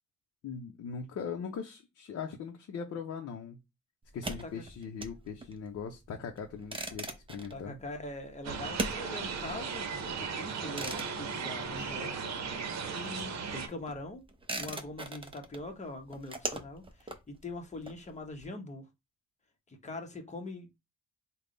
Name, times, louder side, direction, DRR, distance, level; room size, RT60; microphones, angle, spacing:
voice 1, 0.4-3.6 4.1-7.8, left 6 dB, 55° left, 0.7 m, -40 dB
sound 1, 4.0-12.4 12.7-18.4, right 2 dB, 20° right, 0.7 m, -41 dB
voice 2, 7.5-12.1 12.9-14.2 14.6-18.9 19.7-20.8, left 2 dB, 25° left, 1.0 m, -42 dB
sound 2, 8.4-13.7, right 5 dB, 60° right, 0.8 m, -36 dB
3.4 x 2.3 x 3.8 m
cardioid pair, 90°, 30 cm